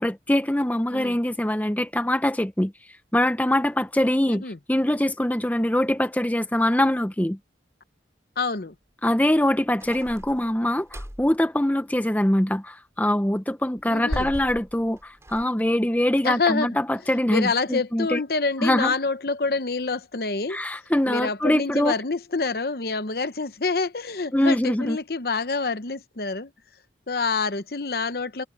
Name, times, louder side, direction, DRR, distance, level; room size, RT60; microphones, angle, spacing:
voice 1, 0.0-2.7 3.1-7.4 9.0-18.2 18.6-18.9 20.5-21.9 24.3-25.0, left 1 dB, 10° left, 0.7 m, -23 dB
voice 2, 4.3-4.6 8.4-8.7 13.9-14.3 16.2-16.8 17.1-20.6 21.0-26.5 27.1-28.4, left 4 dB, 55° left, 0.9 m, -27 dB
sound 1, 9.8-11.3 13.8-15.4, equal, 15° right, 5.9 m, -36 dB
head